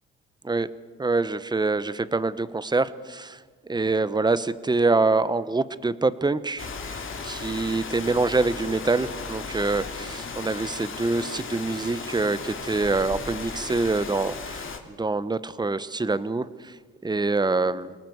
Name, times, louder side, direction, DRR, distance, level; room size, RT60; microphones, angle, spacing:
voice 1, 1.0-3.4 3.7-7.0 7.2-16.7 17.0-18.0, right 3 dB, 15° right, 15 dB, 1.0 m, -25 dB
Rain, 6.6-14.8, left 5 dB, 40° left, 2.9 m, -36 dB
29.0 x 18.5 x 7.9 m, 1.4 s
cardioid pair, 90°, 30 cm